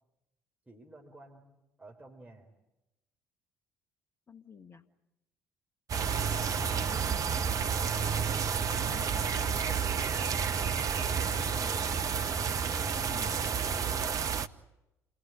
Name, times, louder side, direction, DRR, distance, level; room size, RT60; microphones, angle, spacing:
voice 1, 0.7-2.5 9.6-10.6 11.0-11.9 12.5-14.3, right 2 dB, 15° right, 1 dB, 4.2 m, -51 dB
voice 2, 4.3-4.8 6.7-7.5 8.7-9.3 13.1-13.4, left 7 dB, 25° left, 8 dB, 1.9 m, -51 dB
sound 1, 5.9-14.5, right 6 dB, 40° right, 1.2 m, -30 dB
29.0 x 20.5 x 9.2 m, 0.93 s
figure-of-eight pair, 50°, 9 cm